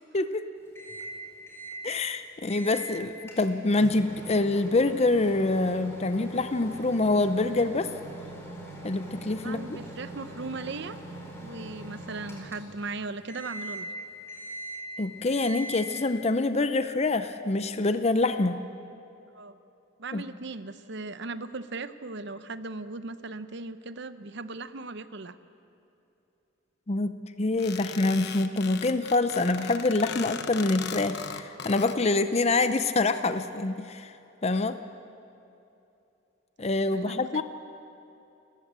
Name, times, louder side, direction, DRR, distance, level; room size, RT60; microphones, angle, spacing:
voice 1, 0.1-0.4 1.8-7.9 8.8-9.8 15.0-18.6 20.1-20.2 26.9-34.1 34.4-34.8 36.6-37.4, left 2 dB, 30° left, 10 dB, 0.6 m, -26 dB
Microwave oven, 0.8-1.2 1.5-1.8 2.5-2.8 3.3-12.9 13.3-13.9 14.3-14.9 15.3-15.9, right 1 dB, 15° left, 4.8 m, -42 dB
voice 2, 9.3-11.0 11.4-13.9 19.3-19.6 20.0-25.4 36.8-37.4, right 3 dB, 60° right, 12 dB, 0.9 m, -38 dB
sound 1, 27.6-32.0, left 7 dB, 55° left, 1.1 m, -38 dB
29.5 x 15.0 x 8.3 m, 2.8 s
head